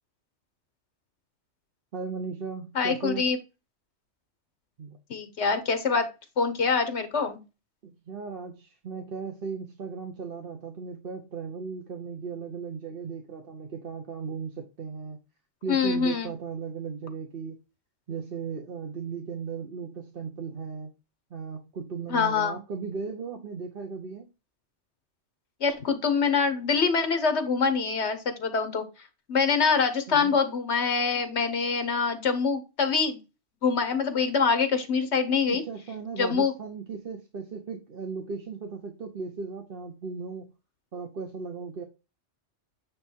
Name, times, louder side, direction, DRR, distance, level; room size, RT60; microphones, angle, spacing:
voice 1, 1.9-3.2 4.8-5.0 7.8-15.2 15.6-17.6 18.1-20.9 21.3-24.3 30.1-30.4 35.5-40.5 40.9-41.8, right 5 dB, 55° right, 1.1 m, -36 dB
voice 2, 2.7-3.4 5.1-6.1 6.4-7.4 15.7-16.3 22.1-22.6 25.6-28.8 29.3-33.2 33.6-35.6 36.2-36.5, left 5 dB, 70° left, 1.5 m, -25 dB
8.9 x 3.1 x 4.4 m
omnidirectional pair, 1.2 m